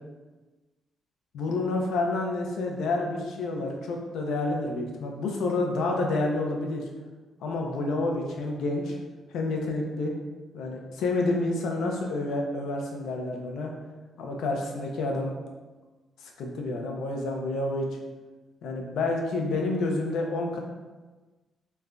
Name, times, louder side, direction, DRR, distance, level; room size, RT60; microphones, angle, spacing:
voice 1, 1.3-6.8 7.4-9.0 9.3-10.1 10.5-13.7 14.2-15.3 16.2-17.9 18.6-20.6, left 2 dB, 85° left, 1 dB, 0.4 m, -29 dB
3.1 x 2.2 x 2.4 m, 1.3 s
cardioid pair, 125°, 0 cm